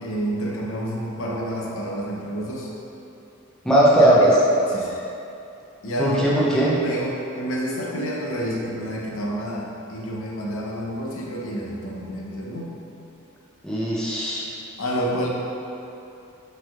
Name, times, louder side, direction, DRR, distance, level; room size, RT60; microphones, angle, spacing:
voice 1, 0.0-2.7 3.9-4.3 4.7-5.1 5.8-12.7 14.8-15.3, equal, 75° left, -3 dB, 0.7 m, -29 dB
voice 2, 3.6-4.3 6.0-6.8 13.6-14.5, right 1 dB, 5° left, -8 dB, 0.6 m, -18 dB
6.0 x 3.3 x 2.4 m, 2.8 s
head